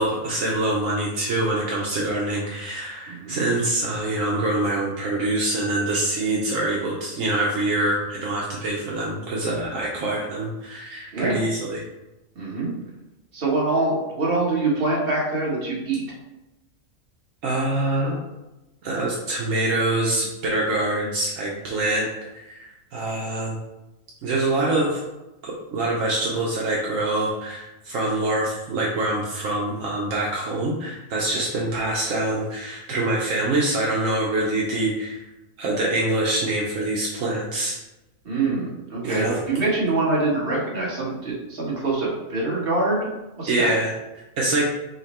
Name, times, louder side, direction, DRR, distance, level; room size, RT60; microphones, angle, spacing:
voice 1, 0.0-11.8 17.4-18.1 18.8-22.1 22.3-23.6 24.2-25.0 25.4-35.2 35.6-37.7 39.0-39.4 43.5-43.9 44.4-44.7, right 2 dB, 75° right, -3 dB, 1.1 m, -25 dB
voice 2, 3.1-3.4 11.1-11.4 12.3-12.7 13.3-16.0 38.2-43.1 43.4-43.7, right 2 dB, 45° right, -5 dB, 1.5 m, -24 dB
5.5 x 2.2 x 4.2 m, 1.0 s
omnidirectional pair, 1.4 m